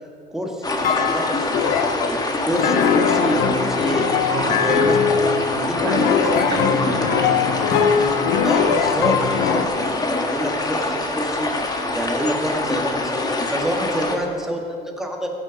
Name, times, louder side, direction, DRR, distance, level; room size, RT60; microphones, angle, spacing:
voice 1, 0.3-4.3 4.6-5.0 5.8-6.3 8.0-11.5 11.9-15.3, equal, 5° right, 1 dB, 1.7 m, -27 dB
sound 1, 0.6-14.2, left 2 dB, 25° left, 1.5 m, -25 dB
Thump thud, 0.8-1.8 2.6-3.5 4.5-5.3 6.4-7.1 7.7-8.7, left 7 dB, 55° left, 1.2 m, -26 dB
sound 2, 1.5-2.2 2.5-9.6, left 7 dB, 85° left, 0.8 m, -21 dB
voice 2, 4.3-5.0 5.5-8.8, right 3 dB, 75° right, 2 dB, 1.9 m, -31 dB
15.5 x 7.6 x 6.4 m, 2.4 s
cardioid pair, 110°, 17 cm